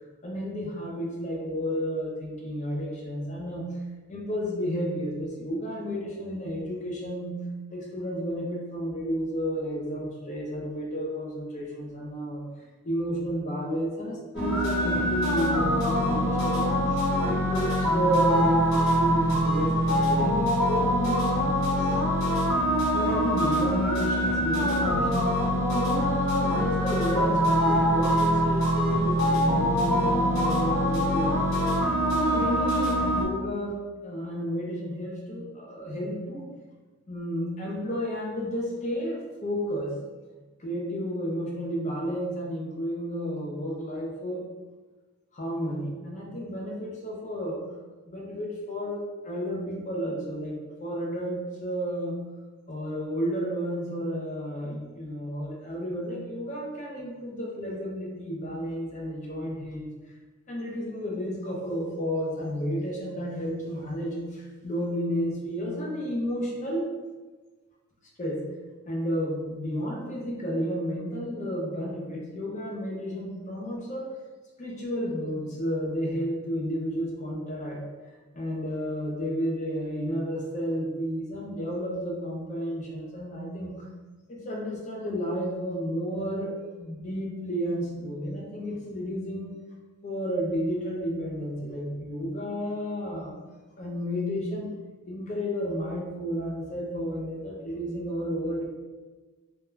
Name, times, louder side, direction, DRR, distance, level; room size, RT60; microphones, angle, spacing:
voice 1, 0.2-3.7 4.1-7.4 7.7-12.5 12.8-22.0 22.9-25.3 25.7-31.6 32.0-36.4 37.1-40.0 40.6-44.5 45.3-47.6 48.1-52.2 52.7-59.9 60.5-66.9 68.2-68.5 68.9-74.2 74.6-77.9 78.3-83.9 84.3-89.6 90.0-93.3 93.8-94.7 95.1-98.7, equal, 30° left, -2 dB, 0.4 m, -32 dB
sound 1, 14.3-33.2, equal, 55° left, 0.8 m, -24 dB
2.2 x 2.1 x 3.0 m, 1.3 s
head